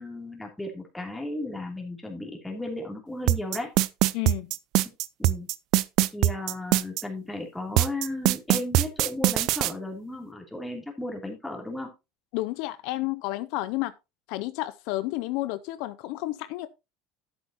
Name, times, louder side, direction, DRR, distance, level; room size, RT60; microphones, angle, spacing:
voice 1, 0.0-3.7 5.2-5.5 6.1-11.9, left 2 dB, 5° left, 2.9 m, -35 dB
sound 1, 3.3-7.0 7.8-9.7, right 16 dB, 60° right, 0.4 m, -22 dB
voice 2, 4.1-4.5 12.3-13.9 14.3-16.7, left 18 dB, 70° left, 0.5 m, -31 dB
11.0 x 8.0 x 2.9 m
supercardioid pair, 130°, 0 cm